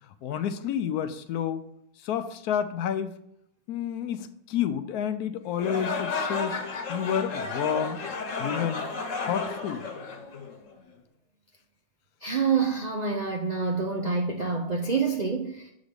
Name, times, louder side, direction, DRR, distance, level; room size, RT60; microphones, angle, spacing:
voice 1, 0.2-1.7 2.0-3.2 3.7-6.6 6.9-8.0 8.4-8.9 9.2-9.8, left 8 dB, 80° left, 1.1 m, -29 dB
sound 1, 5.5-10.7, left 4 dB, 60° left, 1.2 m, -32 dB
voice 2, 12.2-15.6, right 5 dB, 55° right, 0.4 m, -27 dB
7.3 x 3.9 x 5.1 m
omnidirectional pair, 1.6 m